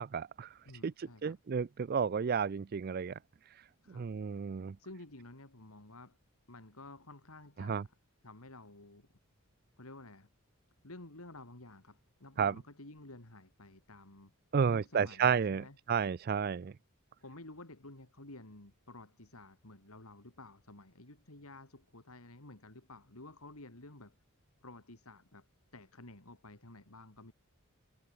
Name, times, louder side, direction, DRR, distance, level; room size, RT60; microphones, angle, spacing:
voice 1, 0.0-0.5 0.8-3.1 3.9-4.7 7.6-7.8 12.4-12.5 14.5-16.7, right 6 dB, 45° right, 0.4 m, -32 dB
voice 2, 0.7-1.4 3.8-4.1 4.8-6.2 6.5-8.0 8.2-9.1 9.8-10.3 10.8-14.3 14.7-15.8 17.2-24.2 24.6-25.5 25.7-27.3, left 2 dB, 85° left, 3.5 m, -52 dB
head